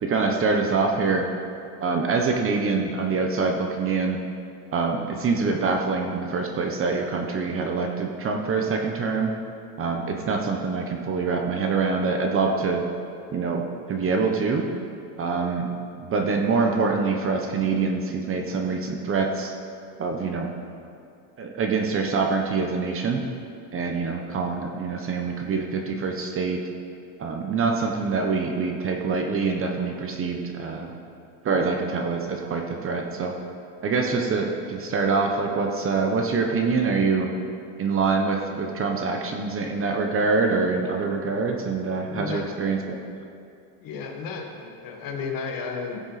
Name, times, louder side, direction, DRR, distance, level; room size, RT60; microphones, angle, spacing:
voice 1, 0.0-1.2 1.8-4.2 4.7-9.3 9.8-12.8 13.3-13.6 13.9-14.6 15.2-15.7 16.0-19.5 20.0-20.5 21.4-23.2 23.7-26.6 27.2-30.9 31.4-33.3 33.8-37.3 37.8-43.0, right 4 dB, 30° right, 3 dB, 1.0 m, -25 dB
voice 2, 41.9-42.7 43.8-46.0, left 5 dB, 50° left, 2 dB, 1.7 m, -33 dB
16.0 x 7.0 x 4.2 m, 2.4 s
cardioid pair, 145°, 44 cm